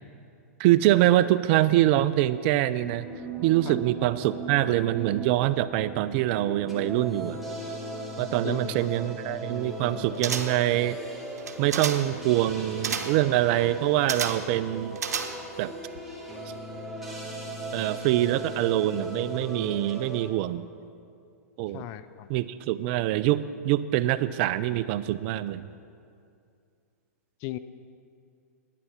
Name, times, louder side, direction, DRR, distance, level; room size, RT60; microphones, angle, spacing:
voice 1, 0.6-3.1 3.4-7.4 8.2-11.0 11.6-15.0 15.6-15.7 17.7-20.7 21.6-21.9 22.3-25.7, right 14 dB, 45° right, 14 dB, 0.5 m, -24 dB
sound 1, 2.7-20.2, right 1 dB, ahead, 2.4 m, -38 dB
voice 2, 8.4-8.9 21.7-22.3 27.4-27.6, left 14 dB, 40° left, 13 dB, 0.5 m, -36 dB
sound 2, 10.2-10.7 11.4-12.2 12.8-13.3 14.1-14.5 15.0-15.6 15.9-16.0, right 6 dB, 85° right, 0.9 m, -32 dB
11.0 x 9.6 x 5.7 m, 2.4 s
hypercardioid pair, 125°, 9 cm